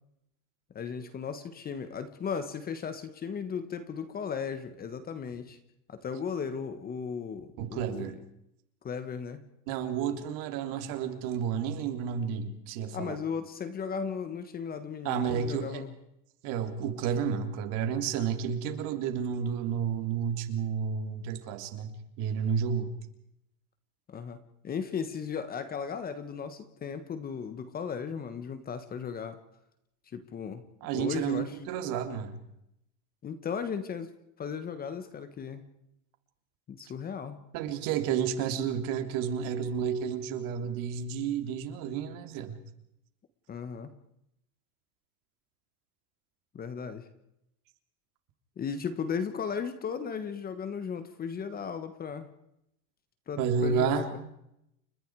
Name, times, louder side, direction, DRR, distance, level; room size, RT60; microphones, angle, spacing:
voice 1, 0.7-5.6 5.9-8.2 8.8-9.4 12.9-15.9 24.1-24.4 24.6-29.4 30.1-30.6 30.9-31.5 33.2-35.6 36.7-37.4 43.5-43.9 46.5-47.1 48.6-52.3 53.3-54.2, left 6 dB, 20° left, 11 dB, 1.4 m, -36 dB
voice 2, 7.6-8.2 9.7-13.2 15.0-15.8 16.4-21.9 22.2-22.9 30.8-32.4 37.5-42.6 53.4-54.1, right 7 dB, 50° right, 7 dB, 3.4 m, -31 dB
30.0 x 26.0 x 4.8 m, 0.81 s
supercardioid pair, 160°, 43 cm